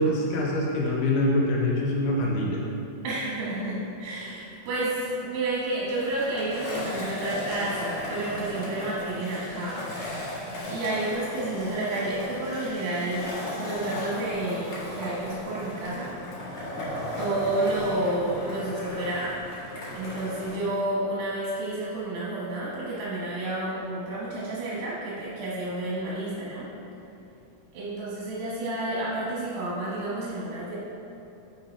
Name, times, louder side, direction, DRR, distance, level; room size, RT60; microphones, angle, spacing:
voice 1, 0.0-2.6, left 1 dB, 80° left, -3 dB, 2.9 m, -24 dB
voice 2, 3.0-10.4 10.7-13.3 13.6-16.1 17.2-19.4 19.9-26.7 27.7-30.8, right 1 dB, 75° right, -7 dB, 3.0 m, -30 dB
Skateboard, 5.9-20.5, left 1 dB, 50° left, 2.0 m, -36 dB
10.0 x 5.2 x 3.3 m, 2.9 s
omnidirectional pair, 4.3 m